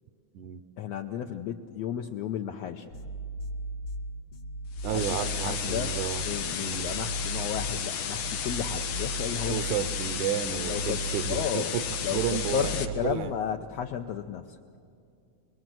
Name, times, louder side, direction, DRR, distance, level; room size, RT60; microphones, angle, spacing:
voice 1, 0.8-2.9 4.9-5.9 6.2-9.6 10.5-11.0 11.3-11.7 12.0-14.6, left 9 dB, 75° left, 3 dB, 1.7 m, -33 dB
sound 1, 2.9-13.1, right 2 dB, 55° left, 1.2 m, -37 dB
sound 2, 4.8-12.8, left 8 dB, 90° left, 2.9 m, -33 dB
voice 2, 4.8-6.3 6.6-6.9 9.5-11.8 12.1-13.3, right 10 dB, 75° right, 12 dB, 2.0 m, -32 dB
23.5 x 22.5 x 7.7 m, 2.4 s
omnidirectional pair, 3.6 m